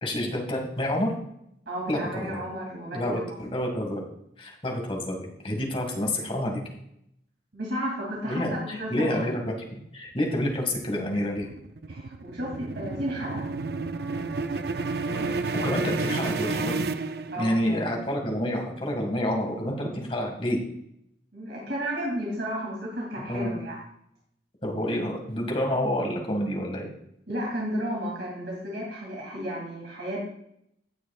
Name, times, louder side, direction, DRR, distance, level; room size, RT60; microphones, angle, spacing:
voice 1, 0.0-1.1 1.9-2.4 2.9-4.0 4.4-6.6 8.3-11.5 15.1-16.9 17.4-20.6 23.3-23.6 24.6-26.9, left 1 dB, 30° left, 1 dB, 1.9 m, -28 dB
voice 2, 1.7-3.3 7.5-9.2 11.9-13.5 17.3-17.8 21.3-23.8 27.3-30.3, equal, 75° right, -4 dB, 2.8 m, -33 dB
sound 1, 10.6-17.8, right 3 dB, 60° right, 0.5 m, -31 dB
17.0 x 6.3 x 2.4 m, 0.75 s
head